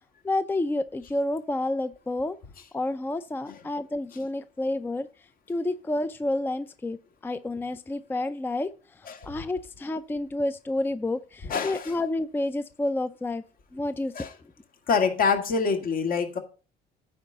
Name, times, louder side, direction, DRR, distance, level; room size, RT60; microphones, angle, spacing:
voice 1, 0.2-2.4 2.7-5.1 5.5-7.0 7.2-8.7 9.3-13.4 13.7-14.1, left 2 dB, 10° left, 0.4 m, -29 dB
voice 2, 9.1-9.4 11.4-11.9 14.1-14.3 14.9-16.4, left 5 dB, 60° left, 2.0 m, -26 dB
9.3 x 4.0 x 6.7 m
cardioid pair, 110°, 17 cm